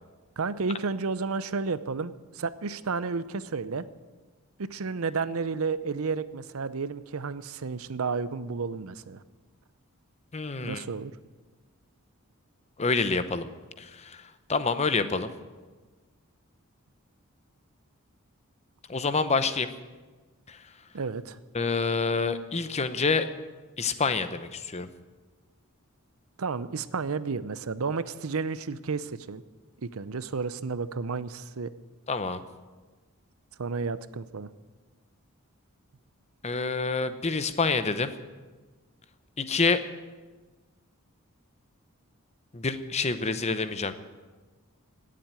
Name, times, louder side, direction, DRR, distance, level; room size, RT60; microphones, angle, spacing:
voice 1, 0.4-3.8 4.6-9.2 10.6-11.1 20.9-21.4 26.4-29.4 29.8-31.7 33.6-34.5, right 4 dB, 75° right, 15 dB, 0.6 m, -32 dB
voice 2, 10.3-10.8 12.8-13.5 13.8-15.3 18.9-19.7 20.5-20.6 21.5-23.3 23.8-24.9 32.1-32.4 36.4-38.1 39.4-39.8 42.5-43.9, left 4 dB, 30° left, 11 dB, 0.8 m, -27 dB
17.5 x 7.6 x 9.0 m, 1.3 s
head